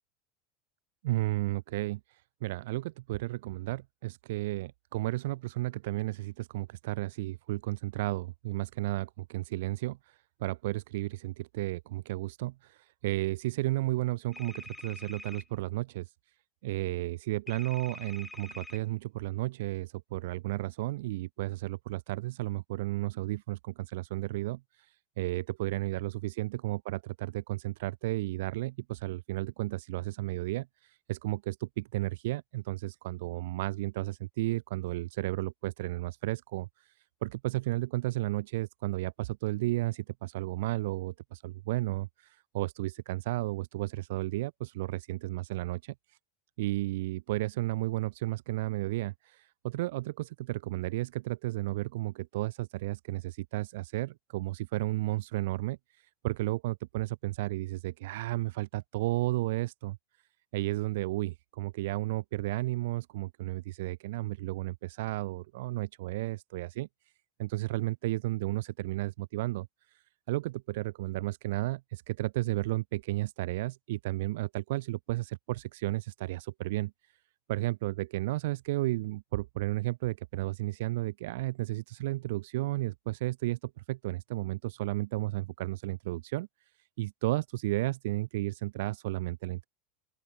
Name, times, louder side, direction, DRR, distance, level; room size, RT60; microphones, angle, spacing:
voice 1, 1.0-16.1 16.6-36.9 37.2-45.9 46.6-55.8 56.2-60.0 60.5-66.9 67.4-69.7 70.3-76.9 77.5-86.5 87.0-89.7, right 18 dB, 70° right, 2.6 m, -33 dB
sound 1, 14.3-15.4 17.5-18.8, left 3 dB, 15° left, 3.4 m, -45 dB
open air
hypercardioid pair, 90°, 0 cm